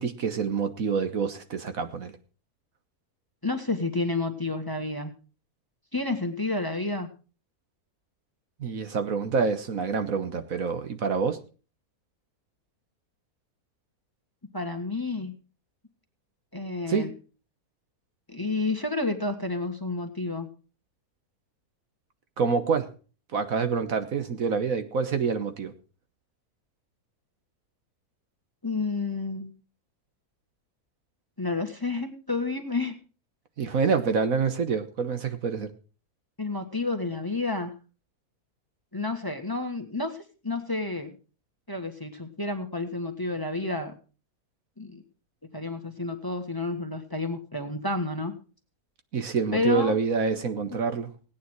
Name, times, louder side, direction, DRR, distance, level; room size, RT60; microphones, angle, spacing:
voice 1, 0.0-2.2 8.6-11.4 16.9-17.1 22.4-22.9 23.3-25.7 33.6-35.7 49.1-51.1, right 5 dB, 65° right, 9 dB, 1.6 m, -27 dB
voice 2, 3.4-5.1 5.9-7.1 14.5-15.3 16.5-17.1 18.3-20.5 28.6-29.5 31.4-32.9 36.4-37.7 38.9-41.1 41.7-43.9 44.8-45.0 45.5-48.3 49.5-50.0, left 2 dB, 15° left, 5 dB, 1.6 m, -30 dB
17.5 x 9.5 x 4.6 m, 0.36 s
omnidirectional pair, 1.6 m